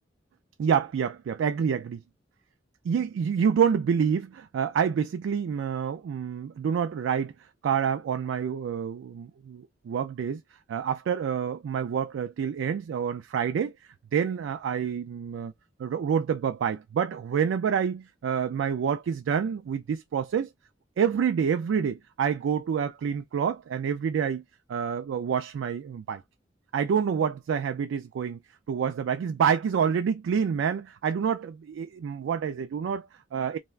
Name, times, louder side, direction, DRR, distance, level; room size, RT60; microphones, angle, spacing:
voice 1, 0.6-2.0 2.9-7.3 7.6-10.4 10.7-13.7 14.1-15.5 15.8-20.5 21.0-24.4 24.7-26.2 26.7-28.4 28.7-33.6, right 7 dB, 80° right, 0.3 m, -27 dB
2.4 x 2.1 x 3.2 m
head